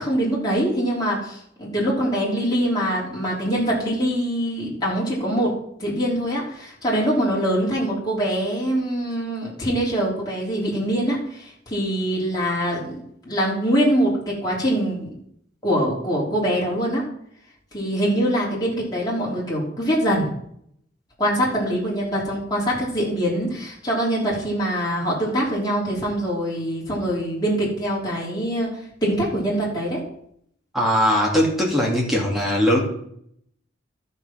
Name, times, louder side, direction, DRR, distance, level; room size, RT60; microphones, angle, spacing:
voice 1, 0.0-5.5 5.8-12.9 13.2-15.1 15.6-17.0 17.7-20.3 21.2-30.0, equal, 20° left, -6 dB, 3.6 m, -23 dB
voice 2, 30.7-32.8, equal, ahead, -3 dB, 2.6 m, -20 dB
12.5 x 5.8 x 5.9 m, 0.69 s
head